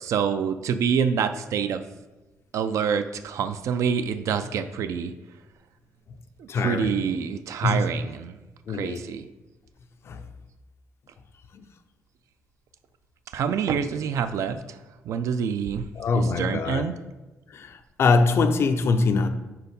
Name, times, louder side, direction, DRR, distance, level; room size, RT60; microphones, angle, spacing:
voice 1, 0.0-1.8 2.5-5.1 6.4-8.4 8.7-9.3 13.3-14.8 15.1-15.9 16.1-16.9, right 7 dB, 65° right, 10 dB, 0.4 m, -26 dB
voice 2, 6.5-6.9 7.6-7.8 8.7-9.0 10.1-10.2 16.0-16.9 17.5-17.7 18.0-19.3, left 4 dB, 50° left, 9 dB, 0.4 m, -22 dB
4.6 x 4.0 x 5.2 m, 1.1 s
cardioid pair, 125°, 6 cm